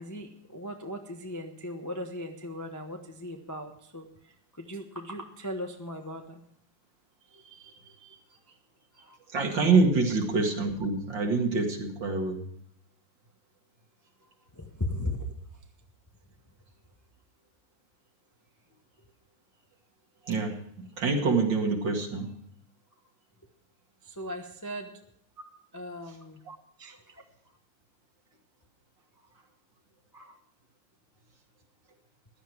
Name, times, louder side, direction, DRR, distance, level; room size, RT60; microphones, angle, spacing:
voice 1, 0.0-6.4 8.3-8.6 8.9-9.2 14.5-15.3 24.0-24.9 25.7-26.4 26.8-27.2 30.1-30.4, left 1 dB, 15° left, 3 dB, 0.7 m, -38 dB
voice 2, 7.3-8.2 9.3-12.4 20.3-20.6 21.0-22.3 26.5-26.6, right 4 dB, 60° right, 2 dB, 2.7 m, -26 dB
15.5 x 11.5 x 4.6 m, 0.68 s
omnidirectional pair, 2.3 m